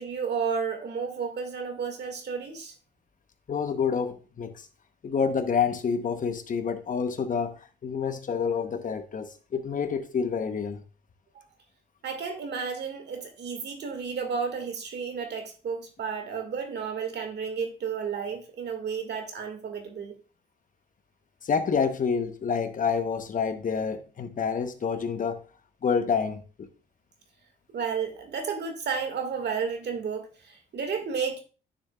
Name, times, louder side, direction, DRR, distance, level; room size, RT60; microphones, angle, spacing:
voice 1, 0.0-2.7 12.0-20.1 27.7-31.4, right 6 dB, 60° right, 1.9 m, -32 dB
voice 2, 3.5-4.7 5.0-10.8 21.4-25.4 25.8-26.4, left 6 dB, 40° left, 0.9 m, -28 dB
9.8 x 6.5 x 2.3 m
cardioid pair, 90°, 20 cm